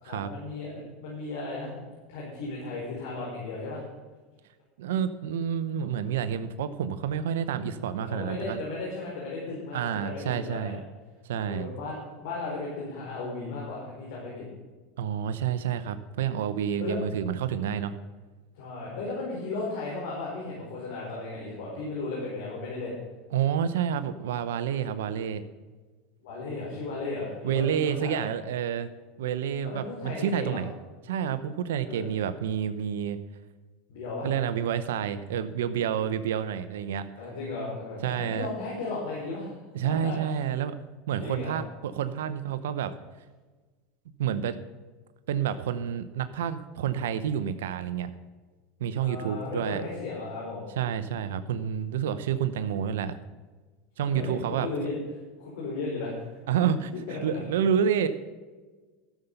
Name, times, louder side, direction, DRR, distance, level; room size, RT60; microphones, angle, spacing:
voice 1, 0.0-3.8 8.0-10.7 11.5-14.4 16.8-17.0 18.5-23.0 26.2-28.2 29.6-30.6 31.8-32.1 33.9-34.3 37.1-39.5 39.8-40.3 41.2-41.6 49.0-50.7 54.0-54.9 55.4-56.2 57.1-57.4, left 3 dB, 75° left, -5 dB, 4.6 m, -35 dB
voice 2, 4.8-8.6 9.7-10.8 11.2-11.7 15.0-17.9 23.3-25.4 27.4-28.9 29.2-30.7 31.0-33.2 34.2-37.1 38.0-38.5 39.7-40.7 41.1-42.9 44.2-44.6 45.3-48.1 48.8-49.8 50.8-53.2 54.0-54.7 56.5-58.1, right 8 dB, 85° right, 12 dB, 0.7 m, -29 dB
12.5 x 7.2 x 6.8 m, 1.3 s
supercardioid pair, 105°, 0 cm